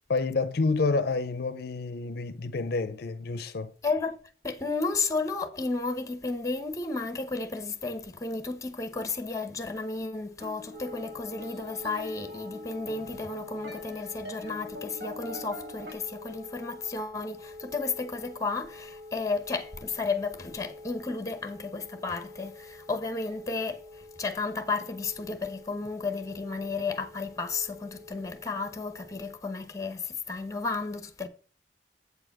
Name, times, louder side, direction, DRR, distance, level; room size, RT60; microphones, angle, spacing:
voice 1, 0.1-3.7, left 3 dB, 60° left, 0.5 m, -28 dB
voice 2, 3.8-4.2 4.4-31.3, left 3 dB, 20° left, 0.9 m, -33 dB
sound 1, 10.4-15.9, left 1 dB, 75° right, 3.6 m, -45 dB
sound 2, 10.7-29.3, left 2 dB, 35° right, 1.2 m, -46 dB
8.2 x 4.9 x 5.8 m
head